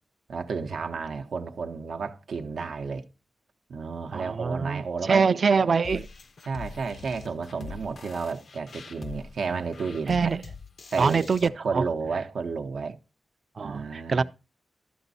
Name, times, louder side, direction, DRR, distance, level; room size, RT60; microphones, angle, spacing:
voice 1, 0.3-3.0 3.7-5.4 5.6-5.7 6.5-10.4 10.9-13.0 13.6-14.2, right 5 dB, 85° right, 0.7 m, -32 dB
voice 2, 4.1-6.1 10.1-10.4 11.0-11.8 13.6-14.2, right 5 dB, 50° right, 0.4 m, -24 dB
sound 1, 5.8-11.5, left 5 dB, 55° left, 0.4 m, -43 dB
12.0 x 6.1 x 4.0 m
wide cardioid pair, 155°, 0 cm